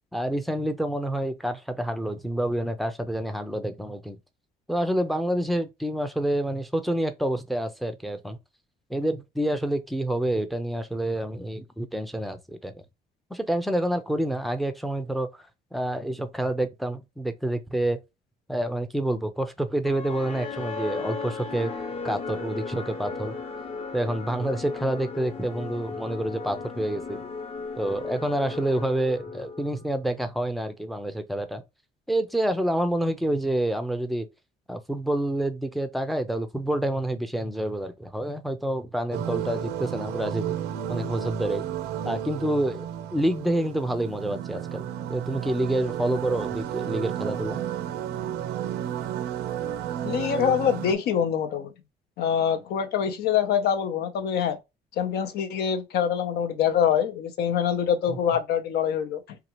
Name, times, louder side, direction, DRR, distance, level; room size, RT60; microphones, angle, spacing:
voice 1, 0.1-4.2 4.7-8.4 8.9-12.8 13.3-15.3 15.7-18.0 18.5-21.7 22.0-23.4 23.9-27.2 27.8-31.6 32.1-34.3 34.7-40.5 40.9-41.6 42.0-44.8 45.1-47.6 58.1-58.2, right 1 dB, ahead, 0.5 m, -28 dB
sound 1, 19.8-30.0, left 4 dB, 35° left, 0.8 m, -36 dB
sound 2, 39.1-50.9, right 10 dB, 80° right, 0.5 m, -32 dB
voice 2, 50.0-51.7 52.2-54.6 55.0-59.4, left 8 dB, 70° left, 0.7 m, -25 dB
2.9 x 2.4 x 2.9 m
cardioid pair, 110°, 17 cm